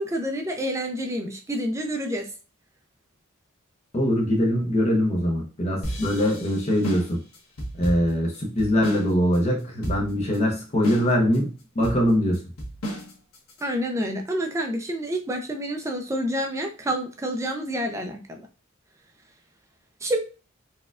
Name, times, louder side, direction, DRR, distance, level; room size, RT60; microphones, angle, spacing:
voice 1, 0.0-2.3 13.6-18.4 20.0-20.2, equal, 15° right, 4 dB, 0.4 m, -28 dB
voice 2, 3.9-7.2 7.8-11.5 11.8-12.4, equal, 30° left, 0 dB, 0.6 m, -22 dB
sound 1, 5.8-9.1 9.3-9.4 9.8-10.4 10.8-11.4 11.8-13.6, equal, 85° left, 1.1 m, -33 dB
4.1 x 2.2 x 2.4 m, 0.33 s
head